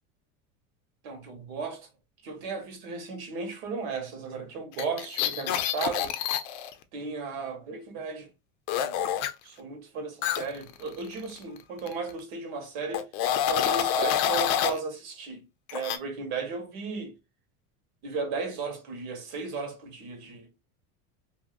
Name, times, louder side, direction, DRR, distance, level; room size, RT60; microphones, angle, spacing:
voice 1, 1.0-1.9 2.2-6.2 6.9-8.3 8.8-9.0 9.4-13.0 13.5-15.4 15.7-17.1 18.0-20.5, right 4 dB, 75° right, 1.4 m, -35 dB
sound 1, 4.7-6.7 8.7-9.3 10.2-11.6 11.9-12.1 12.9-14.8 15.7-16.0, left 10 dB, 50° left, 0.5 m, -27 dB
2.7 x 2.5 x 2.4 m
supercardioid pair, 135°, 43 cm